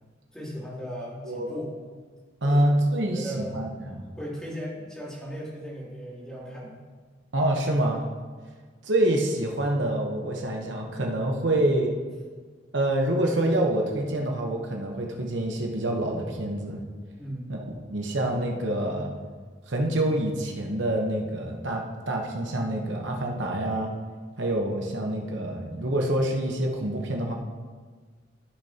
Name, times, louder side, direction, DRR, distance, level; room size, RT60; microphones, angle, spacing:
voice 1, 0.3-1.7 2.4-3.6 4.1-6.8 17.2-17.6, equal, 5° left, -7 dB, 2.8 m, -37 dB
voice 2, 1.2-1.6 2.4-3.7 7.3-8.0 8.8-11.9 12.7-16.8 17.5-19.1 19.7-23.9 24.4-27.3, right 1 dB, 70° right, 1 dB, 1.1 m, -26 dB
14.0 x 6.5 x 2.9 m, 1.5 s
head